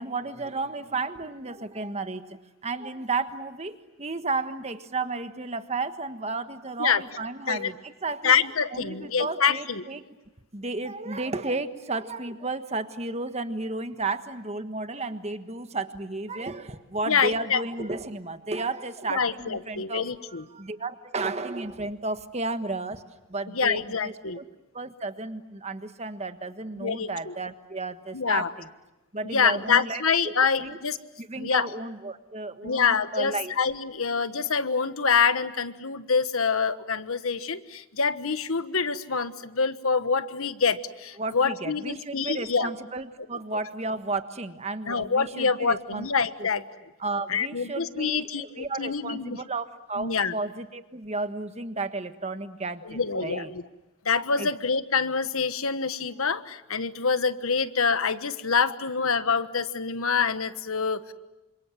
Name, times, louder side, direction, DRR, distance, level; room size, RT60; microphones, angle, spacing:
voice 1, 0.0-8.3 8.7-10.0 10.5-23.0 23.3-24.4 24.7-28.7 29.1-30.3 30.6-30.8 31.2-33.5 41.2-46.1 46.4-46.5 47.0-53.5 54.4-54.5, right 3 dB, 30° right, 9 dB, 1.4 m, -33 dB
voice 2, 8.2-9.8 17.1-17.6 19.1-20.4 23.5-24.4 26.7-27.3 28.1-28.5 29.2-31.0 31.4-31.7 32.6-42.7 44.9-46.6 47.3-49.4 50.0-50.3 52.8-53.6 54.0-61.1, left 5 dB, 75° left, 12 dB, 1.4 m, -26 dB
29.0 x 26.5 x 7.7 m, 1.0 s
head